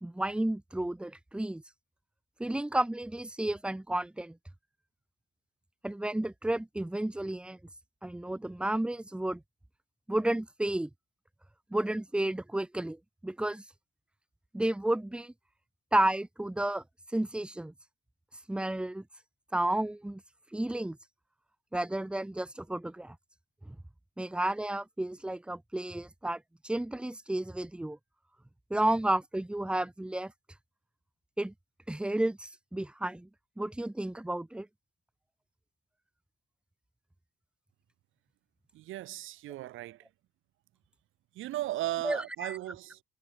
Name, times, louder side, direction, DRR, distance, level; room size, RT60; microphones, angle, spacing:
voice 1, 0.0-1.6 2.4-4.4 5.8-7.6 8.0-9.4 10.1-10.9 11.7-13.6 14.5-15.3 15.9-16.8 17.1-17.7 18.5-19.0 19.5-20.2 20.5-21.0 21.7-23.2 23.7-23.8 24.2-28.0 28.7-30.3 31.4-31.5 31.9-33.3 33.6-34.7 42.0-42.6, right 1 dB, 5° right, 0.5 m, -32 dB
voice 2, 38.7-40.1 41.3-43.0, right 15 dB, 90° right, 2.2 m, -36 dB
cardioid pair, 90°, 20 cm